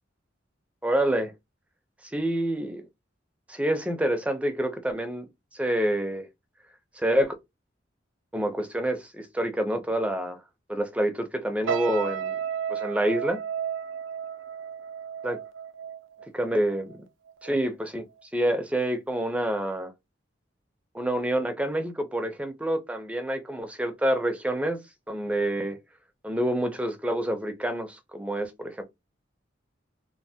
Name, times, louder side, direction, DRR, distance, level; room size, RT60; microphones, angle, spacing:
voice 1, 0.8-1.3 2.1-2.8 3.5-5.3 5.5-6.3 7.0-7.3 8.3-10.4 10.7-12.4 12.7-13.4 15.2-15.4 16.3-17.0 17.4-18.1 18.3-19.9 20.9-24.8 25.1-25.8 26.2-28.8, right 1 dB, 5° right, 0.5 m, -27 dB
sound 1, 11.6-17.0 17.3-17.6, right 8 dB, 70° right, 0.3 m, -33 dB
3.1 x 2.1 x 2.7 m
head